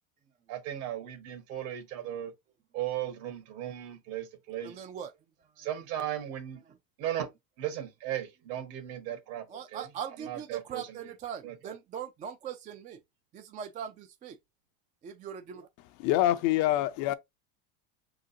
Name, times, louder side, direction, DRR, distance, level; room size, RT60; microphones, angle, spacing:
voice 1, 0.5-2.3 2.7-4.8 5.6-6.6 7.0-7.3 7.6-9.5 9.7-9.8 10.3-10.8 11.4-11.5, right 11 dB, 65° right, 1.7 m, -36 dB
voice 2, 4.6-5.5 6.6-6.8 9.5-13.0 13.3-14.4 15.0-15.7, right 8 dB, 20° right, 0.3 m, -41 dB
voice 3, 16.0-17.1, left 14 dB, 50° left, 0.5 m, -25 dB
4.9 x 3.8 x 2.7 m
supercardioid pair, 125°, 41 cm